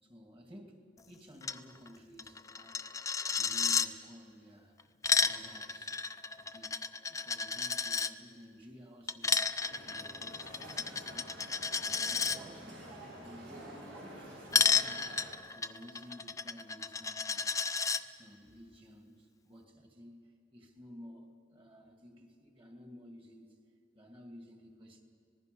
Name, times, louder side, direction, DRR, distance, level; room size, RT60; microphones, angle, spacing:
voice 1, 0.0-2.8 3.3-4.9 5.2-6.0 6.3-9.5 9.8-11.5 11.9-15.1 15.5-17.6 18.0-23.6 23.9-25.0, equal, 25° right, 3 dB, 2.5 m, -54 dB
Coin (dropping), 1.4-1.6 1.9-2.0 2.2-3.9 4.8-8.1 9.1-12.4 14.5-18.0, left 5 dB, 15° left, 0.5 m, -32 dB
sound 1, 9.6-15.3, right 1 dB, 80° right, 7.3 m, -49 dB
26.0 x 19.5 x 5.4 m, 2.4 s
head